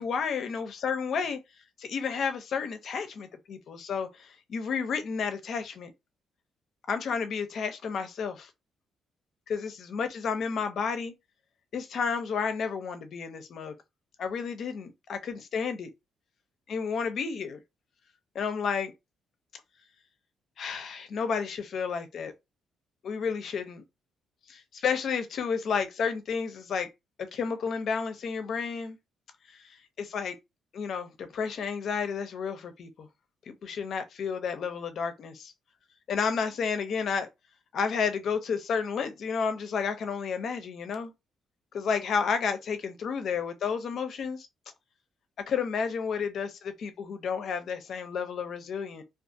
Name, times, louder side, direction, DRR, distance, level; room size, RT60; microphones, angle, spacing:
voice 1, 0.0-1.4 1.8-5.9 6.9-8.5 9.5-11.1 11.7-13.7 14.2-15.9 16.7-17.6 18.3-18.9 20.6-22.3 23.0-23.8 24.5-26.9 27.3-29.0 29.5-29.6 30.0-30.4 30.7-33.1 33.5-35.5 36.1-37.3 37.7-41.1 41.7-44.5 45.5-49.0, left 6 dB, 65° left, 0.5 m, -31 dB
2.4 x 2.4 x 2.6 m
cardioid pair, 90°, 0 cm